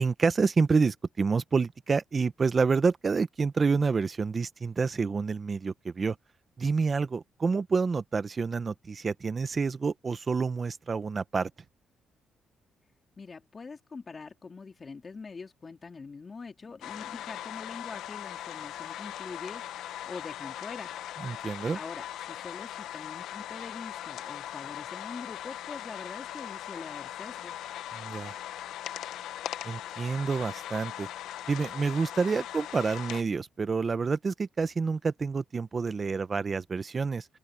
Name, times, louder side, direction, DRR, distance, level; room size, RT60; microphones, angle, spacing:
voice 1, 0.0-6.2 6.6-11.5 21.2-21.8 27.9-28.3 29.6-31.1 31.5-37.3, right 4 dB, 35° right, 1.1 m, -28 dB
voice 2, 13.2-19.6 20.1-20.9 21.7-27.6, left 4 dB, 35° left, 4.2 m, -43 dB
sound 1, 16.8-33.2, left 12 dB, 85° left, 1.1 m, -40 dB
open air
cardioid pair, 90°, 0 cm